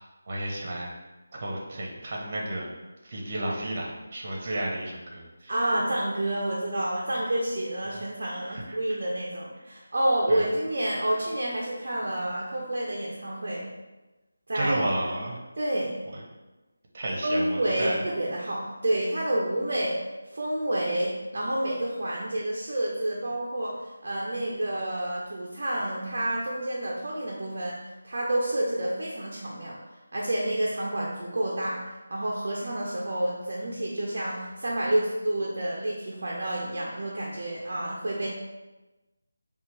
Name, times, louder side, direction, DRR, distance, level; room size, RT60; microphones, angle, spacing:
voice 1, 0.3-0.9 1.3-2.7 3.0-5.7 7.9-8.0 8.4-8.8 10.3-10.5 14.5-15.4 16.0-16.2 16.9-18.1, right 1 dB, 40° right, -2 dB, 1.0 m, -32 dB
voice 2, 5.5-13.7 14.5-14.8 15.6-16.0 17.2-20.0 20.3-27.8 28.0-29.8 30.1-38.3, right 1 dB, 55° right, -3 dB, 0.7 m, -29 dB
5.6 x 2.4 x 3.4 m, 1.1 s
figure-of-eight pair, 160°, 0 cm